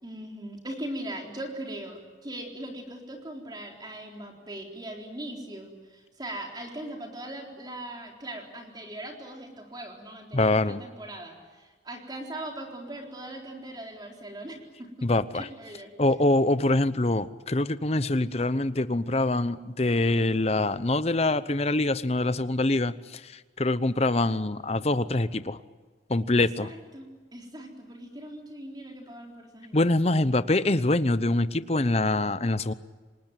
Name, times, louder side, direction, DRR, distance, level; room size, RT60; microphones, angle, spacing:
voice 1, 0.0-15.1 15.3-16.2 26.4-29.8, right 1 dB, 25° right, 1 dB, 3.9 m, -40 dB
voice 2, 10.3-10.8 15.0-15.5 16.0-25.6 26.1-26.7 29.7-32.7, left 2 dB, 35° left, 14 dB, 0.8 m, -24 dB
28.0 x 19.5 x 9.1 m, 1.4 s
head